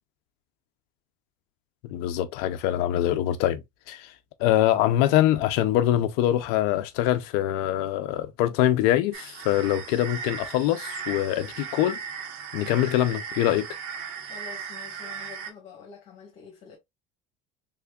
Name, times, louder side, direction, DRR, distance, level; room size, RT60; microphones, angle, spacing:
voice 1, 1.8-4.1 4.4-12.0 12.5-13.7, left 13 dB, 70° left, 0.5 m, -24 dB
sound 1, 9.1-15.5, right 6 dB, 75° right, 0.9 m, -37 dB
voice 2, 14.2-16.8, left 6 dB, 45° left, 1.3 m, -47 dB
3.5 x 3.4 x 2.3 m
cardioid pair, 140°, 17 cm